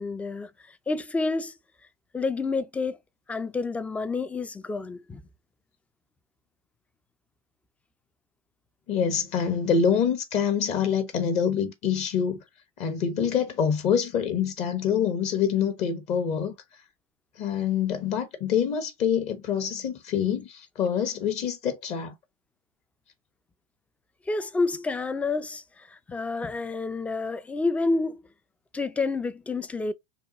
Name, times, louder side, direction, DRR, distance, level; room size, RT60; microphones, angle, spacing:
voice 1, 0.0-1.5 2.1-3.0 3.3-5.2 24.3-28.2 28.7-29.9, left 3 dB, 10° left, 0.4 m, -29 dB
voice 2, 8.9-12.4 12.8-16.5 17.4-22.1, left 7 dB, 40° left, 1.0 m, -26 dB
5.5 x 2.3 x 2.9 m
hypercardioid pair, 115°, 17 cm